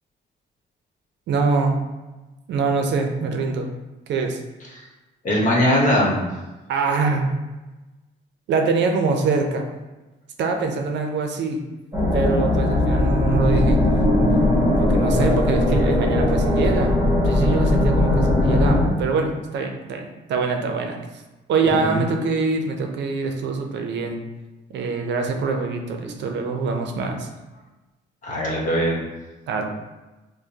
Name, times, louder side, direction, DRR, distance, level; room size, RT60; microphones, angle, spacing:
voice 1, 1.3-1.8 2.5-3.7 4.1-4.4 6.7-7.3 8.5-9.7 10.4-11.6 12.1-13.8 14.8-17.0 17.2-21.0 21.5-24.2 24.7-27.3 29.5-29.6, right 4 dB, 70° right, 4 dB, 0.6 m, -24 dB
voice 2, 5.2-6.2 21.6-22.0 28.2-29.0, equal, 40° left, -3 dB, 1.2 m, -20 dB
sound 1, 11.9-18.9, left 1 dB, 15° right, 1.3 m, -19 dB
4.9 x 2.2 x 2.8 m, 1.1 s
cardioid pair, 105°, 19 cm